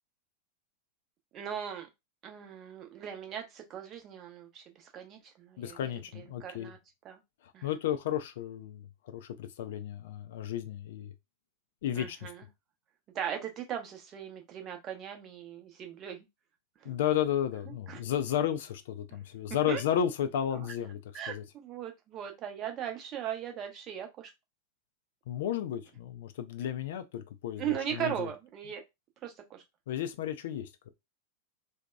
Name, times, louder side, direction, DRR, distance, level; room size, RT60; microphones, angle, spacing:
voice 1, 1.3-1.9 2.2-4.6 4.9-5.9 6.2-6.8 7.0-7.2 7.5-7.7 12.0-12.4 13.1-16.2 16.8-17.0 17.9-18.0 19.7-19.8 21.1-24.3 27.6-28.8 29.2-29.6, right 9 dB, 30° right, 0.7 m, -38 dB
voice 2, 5.6-6.7 7.6-8.9 9.1-11.1 11.8-12.3 16.9-21.0 21.3-21.4 25.3-28.3 29.9-30.9, left 10 dB, 55° left, 0.3 m, -33 dB
2.7 x 2.1 x 2.2 m
figure-of-eight pair, 90°, 0 cm